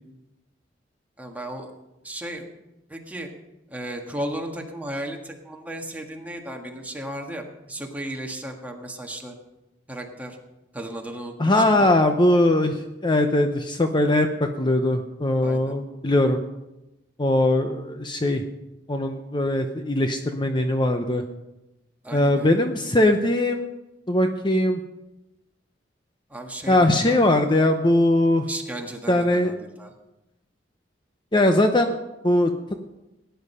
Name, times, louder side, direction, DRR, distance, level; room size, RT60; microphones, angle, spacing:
voice 1, 1.2-1.7 2.0-2.4 2.9-3.3 3.7-9.3 9.9-10.4 10.7-11.9 15.4-15.7 22.0-22.5 26.3-27.6 28.5-29.9, right 1 dB, 10° right, 1 dB, 1.7 m, -35 dB
voice 2, 11.4-14.3 14.6-16.4 17.2-18.4 18.9-21.2 22.1-23.6 24.1-24.8 26.7-28.5 29.1-29.5 31.3-32.0 32.2-32.5, left 1 dB, 25° left, 6 dB, 0.8 m, -20 dB
17.5 x 10.5 x 5.6 m, 0.98 s
head